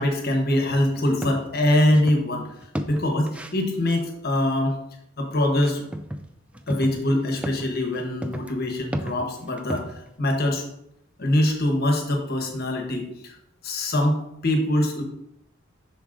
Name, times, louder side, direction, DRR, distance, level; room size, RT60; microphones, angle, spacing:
voice 1, 0.0-2.5 2.9-4.8 5.2-5.8 6.7-9.9 10.2-10.6 11.2-13.3 13.6-15.0, left 1 dB, 50° left, 3 dB, 1.1 m, -23 dB
sound 1, 0.9-2.2 2.6-3.6 5.6-6.2 6.5-10.1, equal, 5° right, 0.3 m, -33 dB
6.9 x 6.0 x 2.6 m, 0.79 s
head